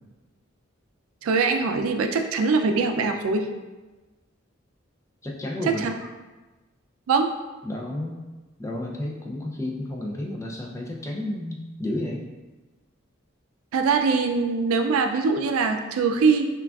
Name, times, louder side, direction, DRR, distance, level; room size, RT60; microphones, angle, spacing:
voice 1, 1.2-3.5 5.7-5.9 7.1-7.3 13.7-16.5, right 4 dB, 90° right, 5 dB, 0.4 m, -22 dB
voice 2, 5.2-5.9 7.6-8.2 8.6-12.2, left 1 dB, 15° left, -1 dB, 0.4 m, -31 dB
5.8 x 2.3 x 2.3 m, 1.2 s
head